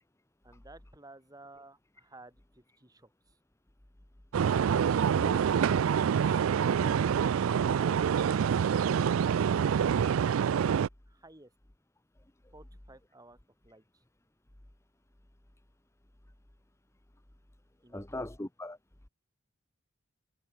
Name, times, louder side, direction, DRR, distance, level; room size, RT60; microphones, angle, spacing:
voice 1, 0.4-3.4 11.1-11.5 12.5-14.0 17.8-18.3, right 2 dB, 20° right, 5.7 m, -55 dB
sound 1, 4.3-10.9, right 7 dB, 90° right, 0.4 m, -26 dB
voice 2, 17.9-18.8, left 1 dB, 15° left, 1.0 m, -39 dB
head